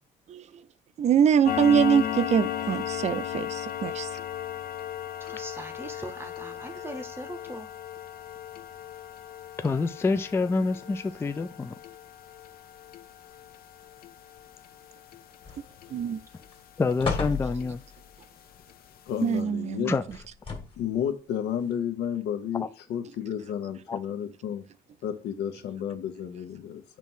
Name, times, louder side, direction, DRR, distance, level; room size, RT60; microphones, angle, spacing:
voice 1, 0.3-0.6 1.0-4.1 15.9-16.2 19.2-20.0, right 8 dB, 40° right, 0.5 m, -24 dB
sound 1, 1.5-16.6 16.9-17.1 17.6-17.7 18.1-18.2 18.7-18.8 19.1-19.2, left 10 dB, 60° left, 0.6 m, -36 dB
voice 2, 5.2-7.7, right 1 dB, 15° right, 0.8 m, -40 dB
voice 3, 9.6-11.7 16.8-17.8 19.9-20.0 23.9-24.0, left 4 dB, 15° left, 0.4 m, -27 dB
sound 2, 15.4-16.0 16.4-16.5 17.0-18.0 20.1-20.9 21.7-21.8, left 4 dB, 30° left, 1.6 m, -33 dB
voice 4, 19.1-19.9 20.8-24.7 25.0-26.8, left 9 dB, 75° left, 1.0 m, -32 dB
7.4 x 3.0 x 5.5 m
cardioid pair, 110°, 17 cm